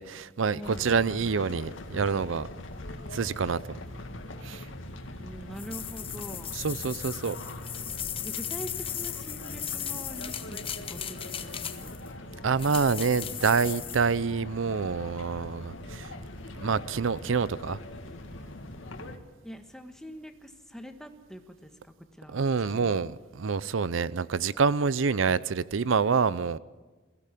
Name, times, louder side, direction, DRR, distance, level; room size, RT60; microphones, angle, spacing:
voice 1, 0.0-2.5 3.1-3.8 4.4-4.7 6.5-7.4 12.4-16.1 16.6-17.8 22.3-26.6, right 5 dB, 85° right, 0.6 m, -27 dB
voice 2, 0.5-1.0 5.2-6.6 7.3-7.4 8.2-12.0 19.4-22.5 22.7-23.0, equal, 5° left, 1.4 m, -44 dB
sound 1, 0.6-19.2, left 1 dB, 90° left, 2.1 m, -42 dB
sound 2, 5.6-12.1 12.6-14.1, left 9 dB, 30° left, 1.0 m, -37 dB
22.0 x 16.0 x 8.5 m
head